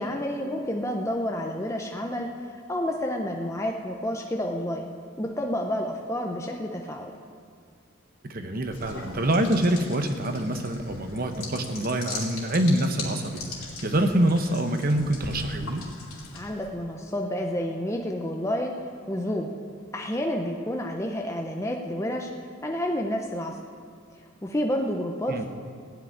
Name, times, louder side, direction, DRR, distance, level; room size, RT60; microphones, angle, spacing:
voice 1, 0.0-2.3 2.7-4.9 5.2-7.1 16.3-18.7 19.1-19.5 19.9-22.3 22.6-23.6 24.4-25.5, equal, 15° left, 1 dB, 0.6 m, -29 dB
voice 2, 8.3-13.4 13.8-15.8 25.3-25.5, right 1 dB, 45° right, 6 dB, 0.9 m, -25 dB
sound 1, 8.6-16.7, left 3 dB, 85° left, 2.8 m, -40 dB
15.5 x 5.2 x 9.5 m, 2.2 s
head